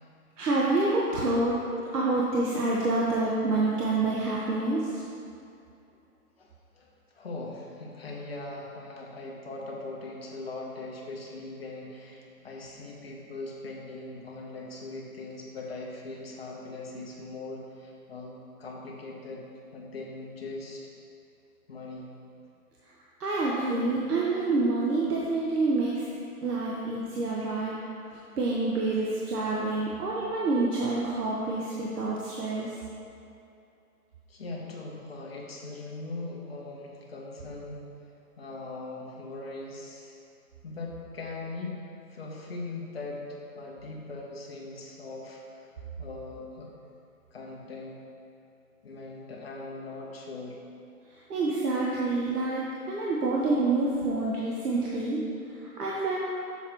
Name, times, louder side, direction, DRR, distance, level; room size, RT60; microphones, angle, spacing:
voice 1, 0.4-1.6 1.9-5.0 23.2-26.0 26.4-27.7 28.4-32.7 51.3-55.2 55.8-56.2, right 2 dB, 80° right, -5 dB, 1.1 m, -27 dB
voice 2, 7.1-19.4 19.7-20.8 21.7-22.1 34.3-37.8 38.4-40.2 40.6-41.8 42.1-43.2 43.5-45.7 46.0-46.7 47.3-48.0 48.8-50.6, left 2 dB, 40° left, -2 dB, 0.9 m, -40 dB
7.1 x 6.0 x 2.9 m, 2.7 s
hypercardioid pair, 170°, 46 cm